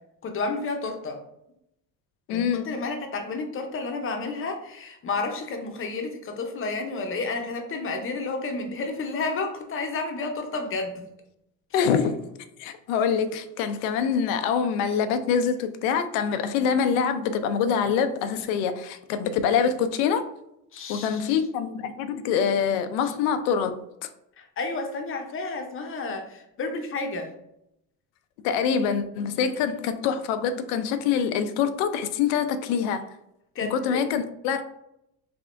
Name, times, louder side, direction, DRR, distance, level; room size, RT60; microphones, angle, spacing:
voice 1, 0.2-1.2 2.3-11.1 11.7-11.8 20.7-21.2 23.0-23.1 24.4-27.3 33.5-34.0, left 3 dB, 35° left, 4 dB, 0.7 m, -31 dB
voice 2, 2.3-2.7 11.7-12.3 12.6-20.2 20.9-23.7 24.0-24.1 28.4-33.0 33.7-34.7, left 7 dB, 90° left, 9 dB, 0.5 m, -25 dB
3.5 x 3.5 x 2.5 m, 0.81 s
cardioid pair, 115°, 39 cm